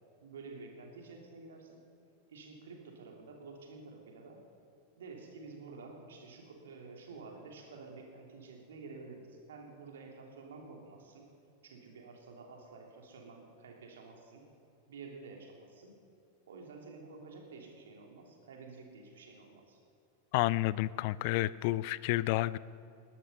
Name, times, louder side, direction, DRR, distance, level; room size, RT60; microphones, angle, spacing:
voice 1, 0.2-1.8 2.3-4.4 5.0-11.3 11.6-14.4 14.9-15.9 16.5-19.8, right 4 dB, 60° right, 1 dB, 3.0 m, -50 dB
voice 2, 20.3-22.6, left 17 dB, 45° left, 19 dB, 0.4 m, -30 dB
20.0 x 12.5 x 5.5 m, 2.6 s
figure-of-eight pair, 90°, 0 cm